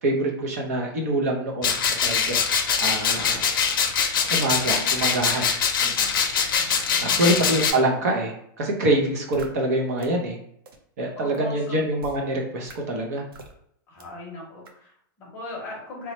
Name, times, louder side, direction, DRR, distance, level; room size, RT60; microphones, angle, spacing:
voice 1, 0.0-1.7 2.0-2.4 2.8-3.4 4.3-5.5 5.8-6.1 7.0-10.4 11.0-13.2, right 1 dB, 45° right, 0 dB, 0.7 m, -25 dB
sound 1, 1.6-7.7, left 6 dB, 70° left, 0.6 m, -23 dB
voice 2, 7.1-7.6 11.2-11.8 13.9-16.1, left 2 dB, 20° left, -3 dB, 0.9 m, -38 dB
sound 2, 9.3-9.5 10.0-10.1 10.7-10.8 11.3-11.4 12.0-12.2 12.7-12.8 13.3-13.5 14.0-14.1 14.7-14.8, right 3 dB, 85° right, 0.7 m, -42 dB
3.0 x 2.2 x 4.1 m, 0.70 s
supercardioid pair, 180°, 12 cm